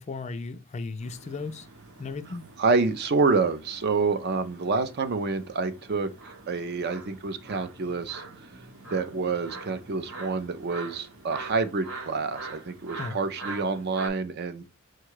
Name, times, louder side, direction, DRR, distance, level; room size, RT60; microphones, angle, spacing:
voice 1, 0.0-1.7 2.0-2.4 13.0-13.2, left 4 dB, 35° left, 0.4 m, -35 dB
sound 1, 1.0-14.1, right 3 dB, 75° right, 1.1 m, -44 dB
voice 2, 2.6-6.1 6.5-8.2 8.9-14.6, right 4 dB, 50° right, 0.5 m, -27 dB
4.6 x 2.3 x 4.7 m
head